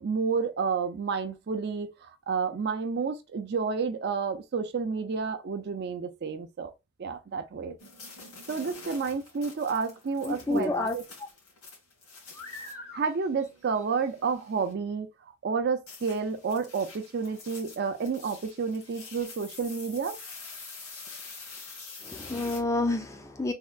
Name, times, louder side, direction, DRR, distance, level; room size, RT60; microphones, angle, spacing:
voice 1, 0.0-6.7 7.0-7.8 8.5-11.0 12.9-15.1 15.4-20.2, right 5 dB, 50° right, 0.4 m, -30 dB
sound 1, 7.8-14.7 15.9-22.6, left 3 dB, 90° left, 1.7 m, -46 dB
voice 2, 10.2-11.0 22.0-23.5, left 2 dB, 15° left, 0.3 m, -29 dB
3.5 x 2.2 x 2.3 m
head